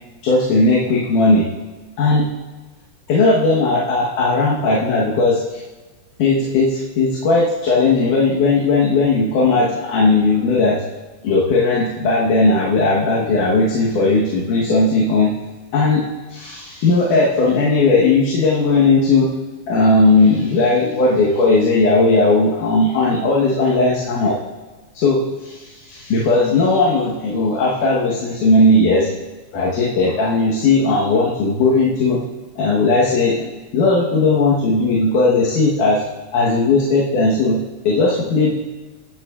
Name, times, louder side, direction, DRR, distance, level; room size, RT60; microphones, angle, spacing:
voice 1, 0.2-1.5 2.0-2.3 3.1-5.6 6.2-10.8 11.2-15.4 15.7-19.3 19.7-24.3 24.9-29.1 29.5-32.2 32.6-36.0 36.3-38.5, left 3 dB, 85° left, -5 dB, 2.8 m, -17 dB
20.5 x 7.3 x 2.4 m, 1.2 s
omnidirectional pair, 3.5 m